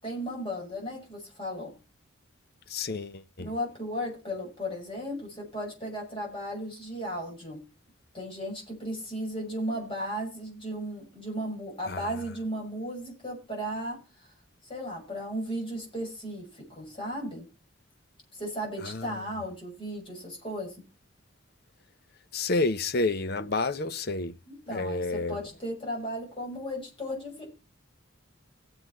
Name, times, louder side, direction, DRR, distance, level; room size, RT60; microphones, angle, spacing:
voice 1, 0.0-1.7 3.4-7.6 8.1-14.0 14.6-17.5 18.3-20.8 24.5-27.5, equal, 25° left, 6.2 m, -35 dB
voice 2, 2.7-3.5 11.9-12.1 18.8-19.3 22.3-24.4 24.7-25.4, left 3 dB, 50° left, 0.7 m, -30 dB
18.5 x 7.9 x 4.3 m
head